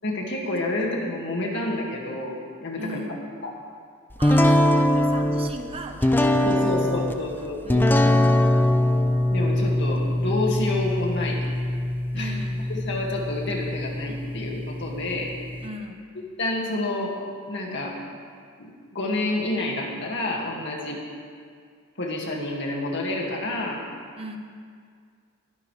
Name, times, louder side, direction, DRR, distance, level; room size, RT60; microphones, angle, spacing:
voice 1, 0.0-3.0 3.4-3.5 6.4-7.8 9.3-11.5 12.1-12.3 12.7-15.3 16.4-17.2 17.5-18.0 18.6-21.0 22.0-23.8, left 2 dB, 55° left, -1 dB, 2.1 m, -29 dB
voice 2, 2.8-3.3 4.2-8.6 12.1-12.8 15.6-16.1 24.2-24.4, right 1 dB, 25° right, 4 dB, 0.9 m, -39 dB
sound 1, 4.2-15.7, left 1 dB, 10° left, 0.4 m, -23 dB
23.5 x 10.0 x 3.3 m, 2.1 s
head